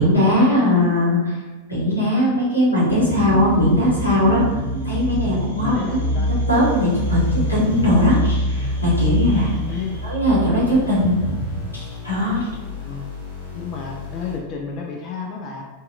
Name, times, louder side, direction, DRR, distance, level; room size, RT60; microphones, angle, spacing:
voice 1, 0.0-1.3 1.7-4.4 4.8-5.7 6.2-9.5 10.0-11.5 11.7-12.4, left 1 dB, 85° left, -6 dB, 0.9 m, -19 dB
sound 1, 2.9-11.4, equal, 80° right, 0.5 m, -25 dB
voice 2, 5.6-6.3 9.3-10.0 12.9-13.2 13.5-15.6, left 5 dB, 35° left, -1 dB, 0.3 m, -31 dB
sound 2, 6.5-14.5, left 4 dB, 60° left, 0.8 m, -36 dB
2.7 x 2.2 x 2.4 m, 1.2 s
figure-of-eight pair, 90°, 0 cm